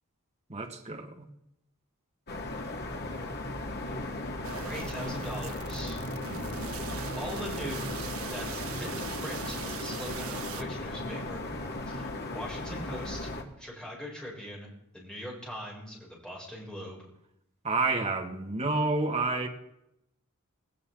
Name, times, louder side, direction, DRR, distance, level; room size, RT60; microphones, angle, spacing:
voice 1, 0.5-1.3 17.6-19.5, right 3 dB, 30° right, 2.1 m, -29 dB
sound 1, 2.3-13.4, left 2 dB, 50° left, 2.3 m, -36 dB
sound 2, 4.4-10.6, right 7 dB, 80° right, 0.9 m, -41 dB
voice 2, 4.6-6.0 7.1-11.4 11.9-13.3 13.6-14.7 14.9-17.1, equal, 5° left, 6.9 m, -41 dB
19.0 x 18.5 x 3.9 m
head